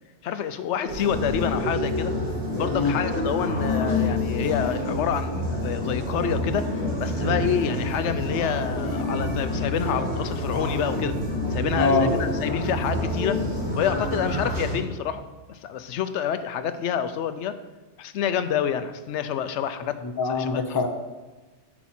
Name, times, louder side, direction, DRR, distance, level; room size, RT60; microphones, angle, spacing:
voice 1, 0.2-2.1 2.6-6.7 7.0-11.2 11.5-13.4 13.8-15.2 15.5-17.6 18.0-20.0 20.2-20.8, left 8 dB, 80° left, 11 dB, 0.9 m, -28 dB
sound 1, 0.9-14.8, left 1 dB, 40° right, 1.9 m, -27 dB
voice 2, 11.7-12.1 20.0-20.9, left 4 dB, 25° left, 4 dB, 0.7 m, -23 dB
8.6 x 5.8 x 4.3 m, 1.2 s
omnidirectional pair, 1.2 m